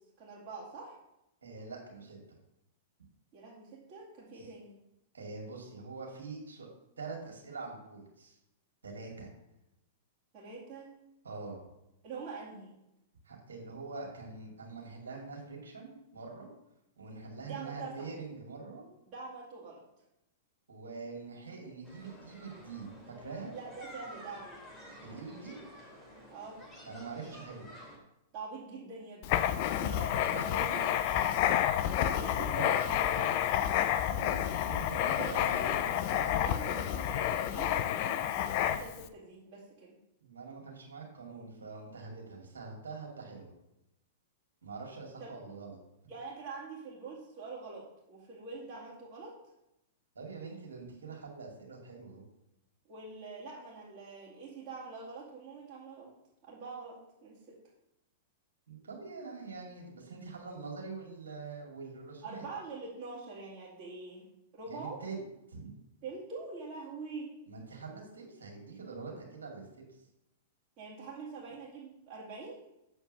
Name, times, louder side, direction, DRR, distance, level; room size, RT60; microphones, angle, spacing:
voice 1, 0.2-1.0 3.3-4.7 10.3-10.9 12.0-12.8 17.4-18.1 19.1-19.8 23.5-24.6 26.3-26.6 28.3-29.4 30.3-30.8 31.9-33.7 35.0-35.2 35.5-39.9 45.2-45.4 46.1-49.3 52.9-56.1 56.4-57.6 62.2-64.3 64.6-65.0 66.0-67.3 70.8-72.6, right 4 dB, 40° right, -9 dB, 2.4 m, -44 dB
voice 2, 1.4-2.2 4.3-4.5 5.1-6.7 7.0-8.4 8.8-9.3 11.2-11.6 13.2-16.5 17.0-18.8 20.7-23.6 25.0-25.6 26.8-27.7 29.7-30.9 34.1-35.9 40.2-43.5 44.6-45.8 50.1-52.2 58.7-62.5 64.7-65.7 67.5-69.6, right 4 dB, 75° right, 0 dB, 2.4 m, -44 dB
sound 1, 21.8-28.0, equal, 10° left, 2.3 m, -51 dB
Writing, 29.2-39.0, left 11 dB, 50° left, 0.5 m, -30 dB
7.1 x 4.5 x 6.4 m, 0.88 s
figure-of-eight pair, 105°, 0 cm